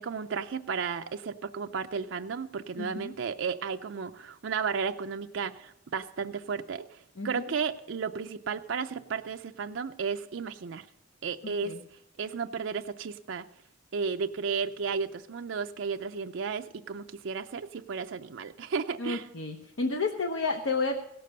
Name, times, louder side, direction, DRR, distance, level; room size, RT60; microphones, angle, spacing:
voice 1, 0.0-10.9 11.2-11.8 12.2-13.5 13.9-19.3, right 5 dB, 65° right, 6 dB, 0.4 m, -33 dB
voice 2, 2.8-3.1 7.2-7.3 11.6-11.8 19.0-21.0, left 3 dB, 75° left, 3 dB, 0.9 m, -31 dB
17.0 x 6.7 x 6.5 m, 0.83 s
head